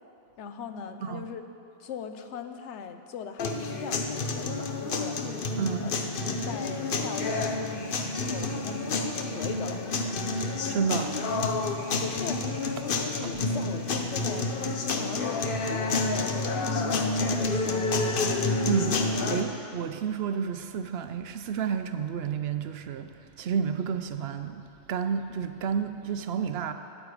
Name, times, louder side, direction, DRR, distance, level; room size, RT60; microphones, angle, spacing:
voice 1, 0.4-1.4 1.8-5.2 5.8-5.9 6.3-8.8 9.3-10.3 11.9-12.4 12.8-18.3, left 6 dB, 85° left, 8 dB, 1.0 m, -39 dB
sound 1, 3.4-19.4, left 3 dB, 55° left, 0.9 m, -29 dB
voice 2, 5.6-5.9 10.7-11.8 18.6-26.7, right 6 dB, 70° right, 9 dB, 0.8 m, -31 dB
13.0 x 9.5 x 4.8 m, 2.7 s
omnidirectional pair, 1.2 m